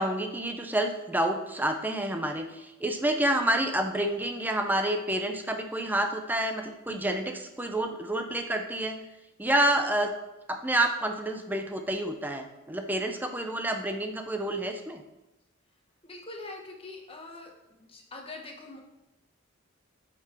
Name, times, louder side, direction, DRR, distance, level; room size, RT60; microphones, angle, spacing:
voice 1, 0.0-9.0 9.4-10.1 10.5-15.0, right 1 dB, 10° right, 5 dB, 0.7 m, -28 dB
voice 2, 16.0-17.5 17.8-18.8, left 2 dB, 25° left, 1 dB, 1.3 m, -43 dB
8.3 x 6.1 x 4.5 m, 0.98 s
head